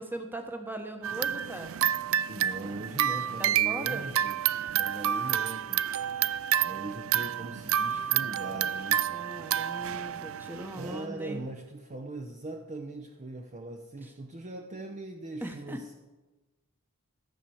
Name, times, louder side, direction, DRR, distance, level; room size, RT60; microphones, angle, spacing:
voice 1, 0.0-1.7 3.4-4.1 9.1-11.5 15.4-15.9, right 1 dB, 10° right, 5 dB, 1.0 m, -39 dB
sound 1, 1.0-11.0, right 10 dB, 65° right, 0.4 m, -29 dB
voice 2, 2.3-4.4 4.7-5.9 6.6-9.0 10.7-15.9, right 2 dB, 35° right, 4 dB, 0.7 m, -40 dB
14.5 x 6.7 x 7.0 m, 1.2 s
head